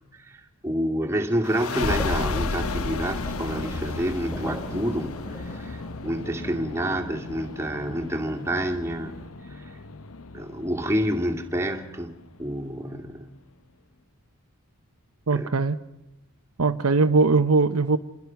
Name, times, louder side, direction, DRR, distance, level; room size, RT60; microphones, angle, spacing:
voice 1, 0.1-9.2 9.5-9.7 10.3-13.3 15.3-15.5, equal, 10° right, 2 dB, 2.4 m, -28 dB
sound 1, 1.4-12.7, left 3 dB, 75° left, 1.1 m, -33 dB
sound 2, 1.7-9.3, equal, 15° left, 7.4 m, -42 dB
voice 2, 15.3-15.8 16.6-18.0, right 4 dB, 85° right, 8 dB, 0.9 m, -20 dB
28.5 x 21.5 x 5.9 m, 0.95 s
head